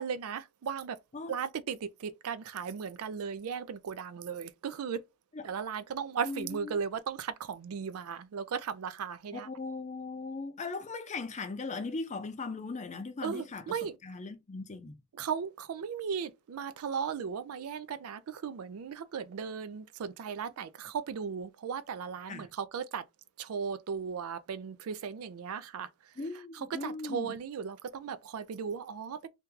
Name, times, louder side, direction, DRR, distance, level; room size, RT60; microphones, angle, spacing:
voice 1, 0.0-1.0 1.3-5.0 5.4-9.5 13.2-14.0 15.1-23.1 23.4-25.9 26.5-29.3, right 6 dB, 75° right, 0.4 m, -36 dB
voice 2, 6.2-6.8 9.3-13.8 14.0-15.0 22.3-22.5 26.2-27.3, left 3 dB, 35° left, 0.5 m, -38 dB
2.8 x 2.3 x 3.6 m
head